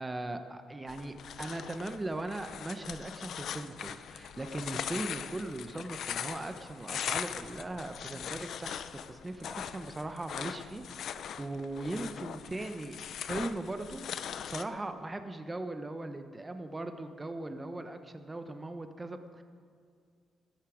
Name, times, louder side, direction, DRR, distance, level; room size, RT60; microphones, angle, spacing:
voice 1, 0.0-14.0 14.4-19.4, right 2 dB, 20° right, 7 dB, 0.9 m, -39 dB
sound 1, 0.9-14.6, left 8 dB, 65° left, 0.5 m, -40 dB
14.0 x 13.0 x 5.0 m, 2.2 s
cardioid pair, 90°, 0 cm